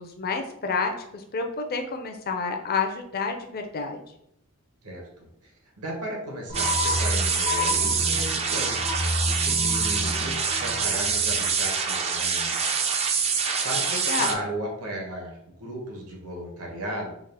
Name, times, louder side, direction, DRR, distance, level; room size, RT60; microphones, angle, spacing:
voice 1, 0.0-4.0 13.9-14.4, left 4 dB, 45° left, 4 dB, 0.5 m, -29 dB
voice 2, 4.8-5.5 5.8-12.8 13.2-17.1, right 1 dB, 80° right, -1 dB, 1.2 m, -35 dB
sound 1, 6.5-11.7, left 2 dB, 85° left, 0.9 m, -30 dB
sound 2, 6.5-14.3, right 5 dB, 30° right, 0.4 m, -25 dB
3.7 x 2.4 x 3.3 m, 0.74 s
head